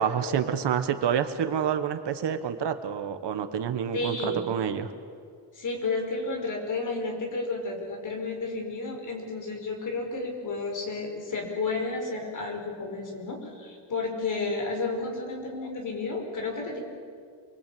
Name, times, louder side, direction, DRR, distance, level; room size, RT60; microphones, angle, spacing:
voice 1, 0.0-4.9, right 8 dB, 60° right, 8 dB, 1.6 m, -28 dB
voice 2, 3.9-4.6 5.5-16.8, left 3 dB, 40° left, 2 dB, 5.4 m, -32 dB
28.5 x 22.5 x 8.8 m, 2.2 s
cardioid pair, 175°, 47 cm